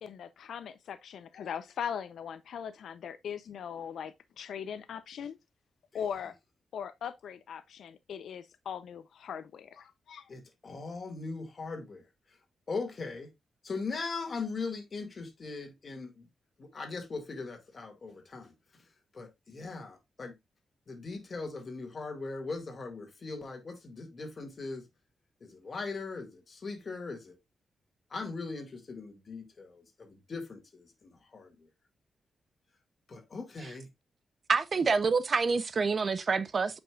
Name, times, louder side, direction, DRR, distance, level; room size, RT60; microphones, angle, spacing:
voice 1, 0.0-5.4 5.9-6.3 6.7-10.3, left 8 dB, 80° left, 0.6 m, -40 dB
voice 2, 10.3-12.0 12.7-13.3 13.6-16.3 16.6-18.8 19.1-20.4 20.9-24.8 25.4-27.4 28.1-31.7 33.1-33.9, left 4 dB, 40° left, 2.1 m, -40 dB
voice 3, 34.5-36.8, right 4 dB, 40° right, 0.6 m, -27 dB
8.7 x 5.3 x 2.4 m
wide cardioid pair, 120°, 0 cm